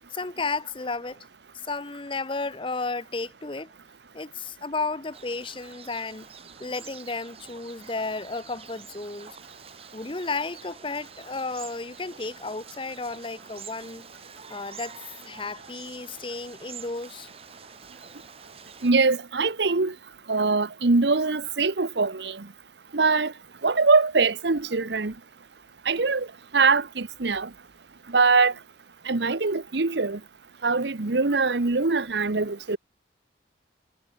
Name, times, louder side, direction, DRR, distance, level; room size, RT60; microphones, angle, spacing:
voice 1, 0.1-1.2 1.6-3.7 4.1-6.3 6.6-9.4 9.9-14.0 14.5-14.9 15.2-17.3, left 3 dB, 30° left, 0.8 m, -33 dB
sound 1, 5.1-18.9, right 6 dB, 30° right, 5.1 m, -47 dB
voice 2, 18.8-19.9 20.3-22.5 22.9-23.3 23.6-25.1 25.9-26.3 26.5-27.5 28.1-28.5 29.1-30.2 30.6-32.8, right 4 dB, 70° right, 1.0 m, -23 dB
head